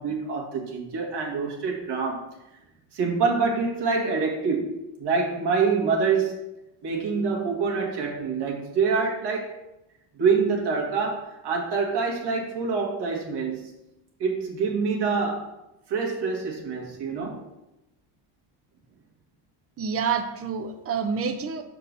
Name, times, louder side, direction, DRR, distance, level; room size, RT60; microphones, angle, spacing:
voice 1, 0.0-2.2 2.9-6.4 6.8-9.5 10.2-13.7 14.2-15.5 15.9-17.4, right 5 dB, 65° right, -1 dB, 1.9 m, -26 dB
voice 2, 19.8-21.6, right 6 dB, 30° right, 7 dB, 0.7 m, -28 dB
5.9 x 4.6 x 5.3 m, 0.92 s
cardioid pair, 115°, 44 cm